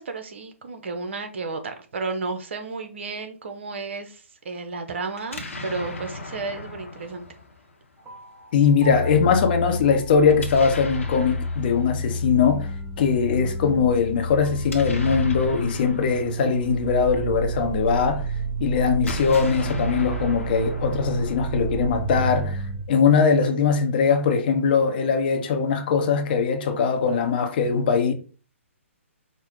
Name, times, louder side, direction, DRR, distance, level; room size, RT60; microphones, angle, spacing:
voice 1, 0.0-7.3, right 3 dB, 60° right, 0.8 m, -33 dB
Explosion, 5.1-8.2 10.3-12.5 14.4-17.8 18.9-22.3, left 3 dB, 75° left, 1.0 m, -38 dB
sound 1, 8.0-22.9, right 1 dB, 25° right, 1.0 m, -30 dB
voice 2, 8.5-12.7 13.0-18.2 18.6-22.6 22.9-28.1, left 6 dB, 45° left, 0.7 m, -21 dB
5.1 x 2.1 x 3.7 m
figure-of-eight pair, 130°, 7 cm